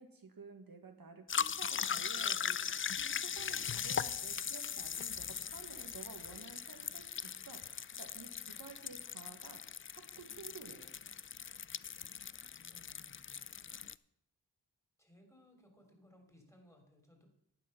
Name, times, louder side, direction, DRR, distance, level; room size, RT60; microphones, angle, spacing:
voice 1, 0.0-10.9, right 4 dB, 60° right, 5 dB, 1.4 m, -53 dB
sound 1, 1.3-13.9, left 7 dB, 35° left, 0.4 m, -39 dB
voice 2, 12.7-13.4 15.0-17.3, left 1 dB, 5° left, 3 dB, 3.3 m, -63 dB
11.5 x 8.4 x 5.7 m, 0.80 s
cardioid pair, 45°, 40 cm